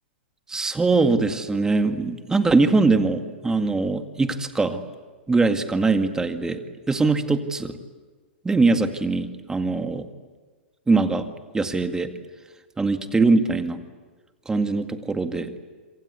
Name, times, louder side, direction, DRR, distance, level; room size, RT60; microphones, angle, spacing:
voice 1, 0.5-4.8 5.3-6.6 6.9-7.7 8.4-10.0 10.9-11.3 11.5-12.1 12.8-13.8 14.5-15.6, right 3 dB, 10° right, 7 dB, 2.0 m, -22 dB
27.0 x 26.0 x 8.4 m, 1.4 s
hypercardioid pair, 115°, 6 cm